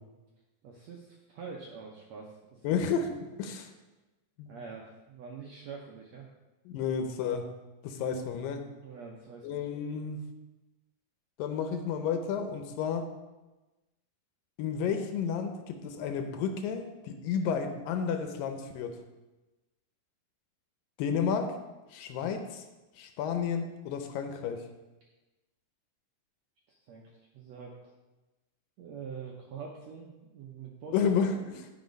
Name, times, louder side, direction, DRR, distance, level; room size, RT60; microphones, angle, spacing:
voice 1, 0.6-2.8 4.5-6.3 8.8-9.6 26.7-27.8 28.8-31.0, right 5 dB, 75° right, -1 dB, 1.6 m, -45 dB
voice 2, 2.6-3.1 3.4-3.7 4.4-4.5 6.7-7.5 7.8-8.6 9.4-10.2 11.4-13.1 14.6-19.0 21.0-21.5 21.9-22.6 23.0-24.6 30.9-31.7, left 6 dB, 75° left, 6 dB, 2.3 m, -31 dB
12.0 x 5.1 x 5.2 m, 1.1 s
omnidirectional pair, 4.2 m